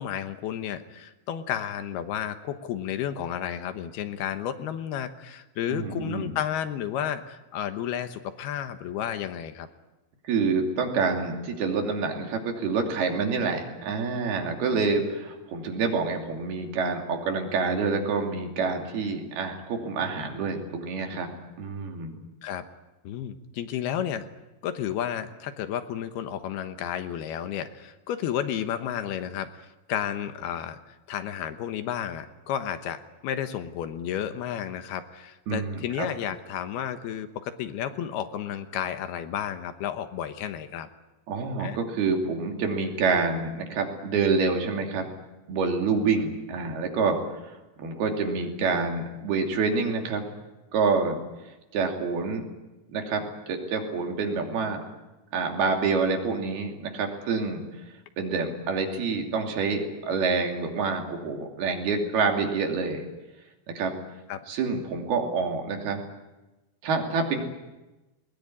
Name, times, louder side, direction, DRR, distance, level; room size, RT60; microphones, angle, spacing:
voice 1, 0.0-9.7 22.4-22.6 23.0-24.3 24.6-40.9 41.6-41.8 64.3-64.4, left 10 dB, 75° left, 9 dB, 3.0 m, -32 dB
voice 2, 5.7-6.3 10.2-21.3 21.6-22.2 35.5-36.1 41.3-45.1 45.5-47.2 47.4-50.3 50.7-51.2 51.7-52.5 52.9-54.8 55.3-57.6 58.2-63.0 63.8-63.9 64.5-66.0 66.8-67.4, right 4 dB, 70° right, 2 dB, 4.7 m, -27 dB
21.0 x 20.5 x 9.9 m, 1.1 s
omnidirectional pair, 4.7 m